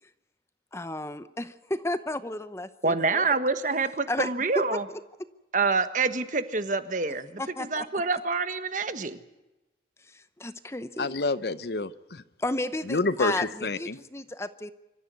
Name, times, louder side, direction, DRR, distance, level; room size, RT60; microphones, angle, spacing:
voice 1, 0.7-3.4 4.1-4.3 4.5-4.6 7.4-7.9 10.1-11.2 12.4-14.7, left 1 dB, 15° left, 0.7 m, -32 dB
voice 2, 2.8-4.8 5.5-9.2, right 4 dB, 45° right, 1.4 m, -27 dB
voice 3, 11.0-12.2 12.9-14.0, left 3 dB, 60° left, 0.8 m, -28 dB
25.0 x 14.5 x 9.6 m
head